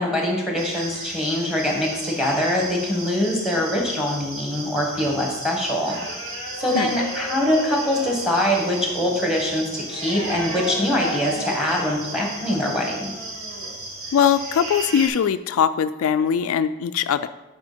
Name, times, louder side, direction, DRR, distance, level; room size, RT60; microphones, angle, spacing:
voice 1, 0.0-6.0 6.6-13.1, left 1 dB, 5° right, -1 dB, 1.6 m, -23 dB
sound 1, 0.6-15.1, right 1 dB, 75° right, 2.0 m, -33 dB
voice 2, 14.1-17.3, left 8 dB, 70° left, 10 dB, 0.3 m, -21 dB
9.6 x 4.4 x 5.1 m, 1.1 s
head